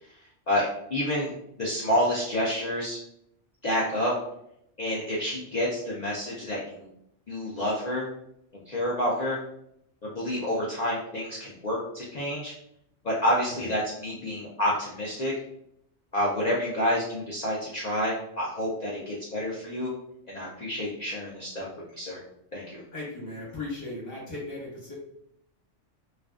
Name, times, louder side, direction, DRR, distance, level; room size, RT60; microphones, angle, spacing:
voice 1, 0.5-1.3 1.6-3.0 3.6-4.1 4.8-6.9 7.3-8.1 8.7-9.4 10.0-12.5 13.0-15.3 16.1-19.9 20.3-22.2 22.5-22.8, equal, 60° left, -5 dB, 0.4 m, -28 dB
voice 2, 22.9-24.9, left 2 dB, 15° left, -6 dB, 0.9 m, -37 dB
2.4 x 2.2 x 2.3 m, 0.74 s
omnidirectional pair, 1.2 m